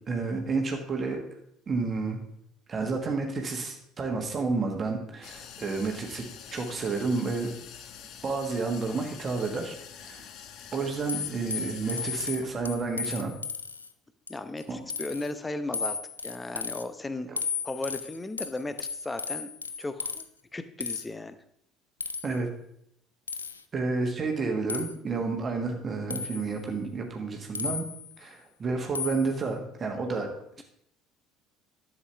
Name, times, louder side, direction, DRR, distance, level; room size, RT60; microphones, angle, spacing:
voice 1, 0.1-1.2 1.7-2.2 2.7-6.2 6.5-7.5 8.2-10.3 10.7-13.3 14.7-14.8 17.3-17.4 22.2-22.5 23.7-27.8 28.2-30.3, right 4 dB, 35° right, 2 dB, 1.5 m, -30 dB
sound 1, 5.2-12.9, left 8 dB, 55° left, 0.8 m, -46 dB
sound 2, 11.1-13.9 14.3-14.6 14.9-15.3 15.7-16.8 17.4-20.2 20.8-21.0 22.0-22.4 23.3-23.6 24.7-24.9 26.1-26.6 27.5-28.1 29.0-29.3, left 6 dB, 85° left, 0.4 m, -35 dB
voice 2, 14.3-16.0 16.2-17.3 17.6-19.5 19.8-20.2 20.5-21.4, left 2 dB, 15° left, 11 dB, 0.8 m, -35 dB
11.0 x 7.4 x 3.4 m, 0.74 s
figure-of-eight pair, 60°, 0 cm